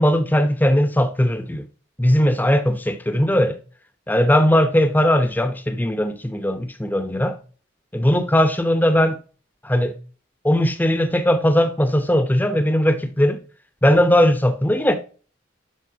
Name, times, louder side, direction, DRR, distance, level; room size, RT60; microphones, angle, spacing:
voice 1, 0.0-1.6 2.0-3.6 4.1-7.4 7.9-9.2 9.6-9.9 10.4-13.4 13.8-15.0, equal, 10° left, 0.7 m, -18 dB
11.0 x 4.3 x 2.7 m
head